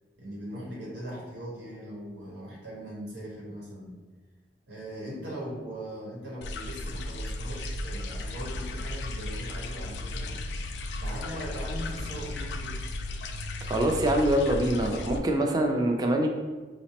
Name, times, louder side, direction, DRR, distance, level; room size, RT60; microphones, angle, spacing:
voice 1, 0.2-4.0 4.7-10.4 11.0-12.8, equal, 90° right, -4 dB, 1.0 m, -40 dB
sound 1, 6.4-15.2, left 2 dB, 70° left, 0.3 m, -35 dB
voice 2, 13.7-16.3, right 1 dB, 20° right, 2 dB, 0.3 m, -24 dB
4.9 x 2.0 x 2.8 m, 1.4 s
head